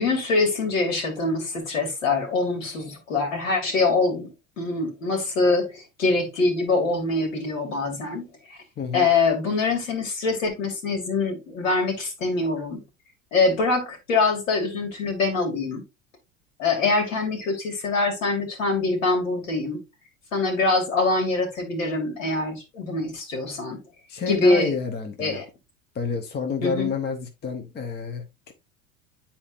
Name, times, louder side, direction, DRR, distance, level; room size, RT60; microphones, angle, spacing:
voice 1, 0.0-8.6 8.9-12.8 13.3-15.8 16.6-19.8 20.3-23.8 24.3-24.7 25.2-25.4 26.6-26.9, left 3 dB, 65° left, 2.7 m, -24 dB
voice 2, 8.8-9.1 24.1-25.4 25.9-28.5, left 5 dB, 25° left, 1.0 m, -29 dB
9.9 x 4.3 x 2.6 m
figure-of-eight pair, 80°, 42 cm